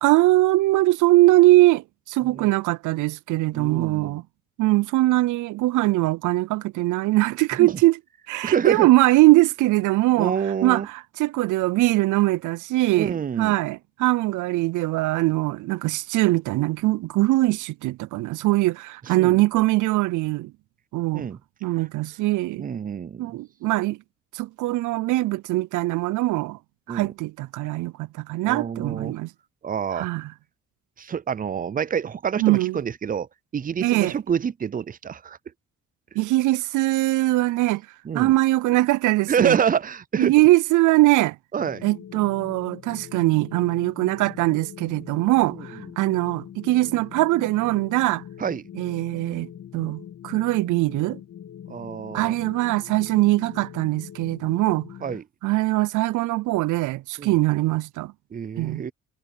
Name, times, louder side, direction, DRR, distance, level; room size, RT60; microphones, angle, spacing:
voice 1, 0.0-4.2 4.6-8.0 8.3-10.3 10.6-20.5 20.9-21.3 21.6-22.7 23.2-24.0 24.3-26.6 26.9-29.3 29.9-30.3 32.4-32.8 33.8-34.1 36.2-37.8 38.1-39.6 40.2-41.4 41.8-48.2 48.8-49.5 49.7-51.2 52.1-54.9 55.4-58.1 58.6-58.8, right 18 dB, 80° right, 0.5 m, -21 dB
voice 2, 3.5-4.2 7.6-7.8 8.4-8.9 10.2-10.9 13.0-13.6 19.1-19.4 21.1-21.4 22.6-23.3 26.9-27.1 28.4-29.2 29.6-30.1 31.0-33.3 33.5-35.4 38.0-38.3 39.3-40.3 41.5-41.8 45.5-45.6 48.4-48.6 51.7-52.3 55.0-55.2 57.2-57.4 58.3-58.9, right 7 dB, 30° right, 0.5 m, -27 dB
sound 1, 41.6-55.2, left 9 dB, 65° left, 3.4 m, -42 dB
cardioid pair, 90°, 30 cm